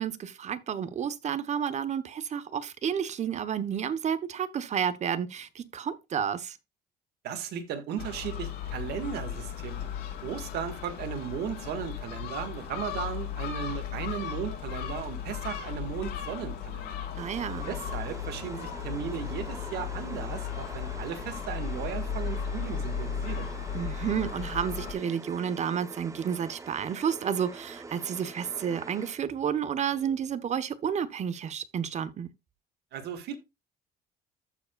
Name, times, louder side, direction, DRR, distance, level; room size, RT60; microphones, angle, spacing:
voice 1, 0.0-6.6 17.2-17.7 23.7-32.3, right 8 dB, 45° right, 0.9 m, -31 dB
voice 2, 7.2-9.8 10.2-17.0 17.6-23.5 32.9-33.4, right 8 dB, 75° right, 1.7 m, -36 dB
Gull seagull, 8.0-24.9, left 8 dB, 80° left, 2.9 m, -36 dB
sound 1, 17.2-29.5, right 3 dB, 20° right, 0.7 m, -45 dB
14.5 x 4.9 x 2.3 m
cardioid pair, 110°, 17 cm